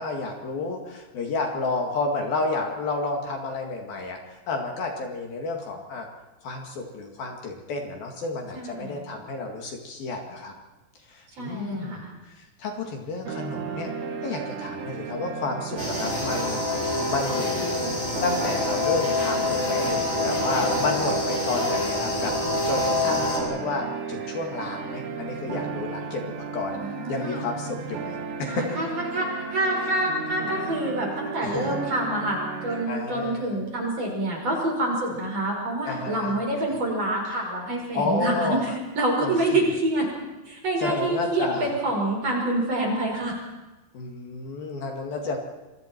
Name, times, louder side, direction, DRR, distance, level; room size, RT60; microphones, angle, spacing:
voice 1, 0.0-6.1 6.4-10.5 11.0-13.9 14.2-17.9 18.2-22.3 22.7-26.8 27.1-28.8 31.4-31.7 32.9-33.6 35.8-36.3 37.9-38.8 39.2-39.6 40.8-41.8 43.9-45.4, left 3 dB, 60° left, 2 dB, 3.7 m, -31 dB
voice 2, 8.5-9.0 11.4-12.1 26.8-27.4 28.5-28.9 29.1-40.1 40.5-41.4 41.8-43.4, right 1 dB, 35° right, -1 dB, 6.3 m, -27 dB
sound 1, 13.3-32.9, right 6 dB, 70° right, 4.1 m, -35 dB
sound 2, 15.8-23.4, left 2 dB, 25° left, 5.6 m, -26 dB
27.5 x 24.0 x 4.6 m, 1.1 s
omnidirectional pair, 5.0 m